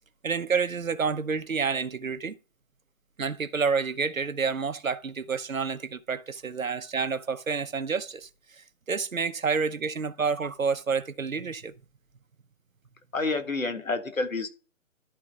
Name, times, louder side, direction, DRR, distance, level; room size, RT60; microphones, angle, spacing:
voice 1, 0.2-2.4 3.2-8.3 8.6-11.7, right 5 dB, 85° right, 0.9 m, -29 dB
voice 2, 13.1-14.5, left 3 dB, 85° left, 1.6 m, -29 dB
12.5 x 4.5 x 3.6 m
figure-of-eight pair, 150°, 40 cm